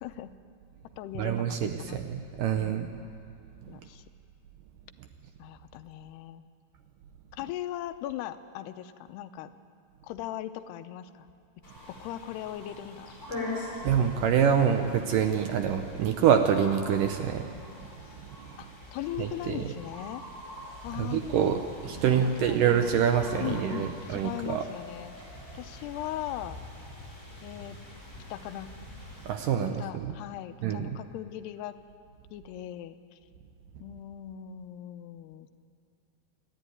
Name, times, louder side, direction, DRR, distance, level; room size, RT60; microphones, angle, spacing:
voice 1, 0.0-0.3 1.0-2.0 2.5-2.9 3.7-4.0 5.4-6.5 7.3-9.5 10.0-11.3 11.9-13.4 18.6-18.7 18.9-20.2 20.8-21.3 21.9-22.7 23.4-25.2 25.5-26.6 27.4-27.8 28.3-28.7 29.8-31.8 32.3-33.2 33.8-35.5, left 12 dB, 85° left, 10 dB, 2.8 m, -39 dB
voice 2, 1.2-2.9 13.8-17.5 18.4-18.5 19.2-19.6 20.9-24.6 29.3-30.1 30.6-30.9, right 8 dB, 75° right, 6 dB, 2.1 m, -26 dB
sound 1, 11.6-29.3, left 2 dB, 15° left, 5.2 m, -43 dB
28.5 x 12.0 x 9.4 m, 2.5 s
omnidirectional pair, 4.6 m